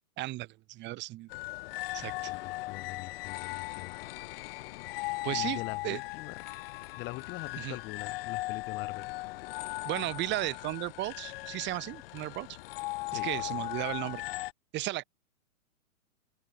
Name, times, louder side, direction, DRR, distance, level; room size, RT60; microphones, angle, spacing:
voice 1, 0.2-1.3 1.9-2.3 5.2-6.0 7.6-7.8 9.8-12.6 13.1-14.2 14.7-15.0, right 18 dB, 25° right, 2.6 m, -35 dB
sound 1, 1.3-14.5, left 19 dB, 45° left, 1.8 m, -38 dB
voice 2, 2.3-3.9 5.3-6.3 7.0-9.1 13.1-13.6, left 21 dB, 30° left, 1.7 m, -43 dB
open air
hypercardioid pair, 140°, 40 cm